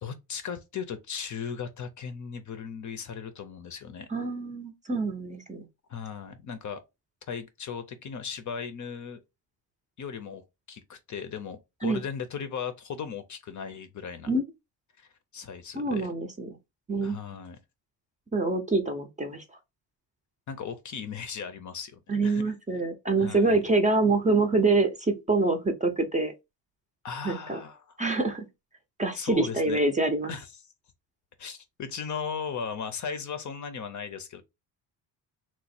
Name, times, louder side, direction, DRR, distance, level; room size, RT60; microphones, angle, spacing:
voice 1, 0.0-4.1 5.9-6.8 7.3-9.2 10.0-10.4 10.7-14.3 15.0-16.1 17.0-17.6 20.5-22.5 23.2-23.6 27.0-28.0 29.1-29.8 30.3-30.7 31.4-34.4, left 6 dB, 40° left, 0.6 m, -37 dB
voice 2, 4.1-5.6 11.8-12.0 14.3-14.4 15.7-16.5 16.9-17.2 18.3-19.4 22.1-26.3 27.2-27.6 28.0-28.4 29.0-30.3, right 3 dB, 15° right, 0.6 m, -26 dB
3.0 x 2.1 x 4.1 m
cardioid pair, 100°, 44 cm